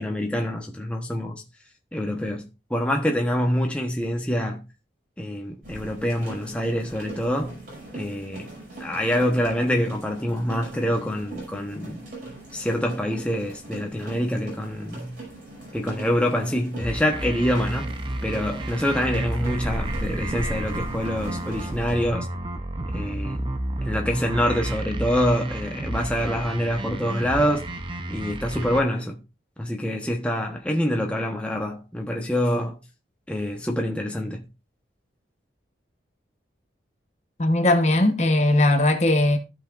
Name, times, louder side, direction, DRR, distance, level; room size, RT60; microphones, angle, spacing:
voice 1, 0.0-1.4 1.9-4.6 5.2-7.6 7.9-8.5 8.8-12.0 12.5-15.2 15.7-17.9 18.2-22.3 22.9-23.5 23.8-27.7 28.1-29.2 29.6-32.8 33.3-34.4, equal, 5° left, 1.0 m, -26 dB
sound 1, 5.6-22.0, right 1 dB, 50° right, 5.8 m, -39 dB
sound 2, 16.8-28.8, right 1 dB, 25° right, 0.7 m, -31 dB
voice 2, 37.4-39.4, left 1 dB, 35° left, 1.0 m, -19 dB
15.0 x 5.6 x 2.5 m
head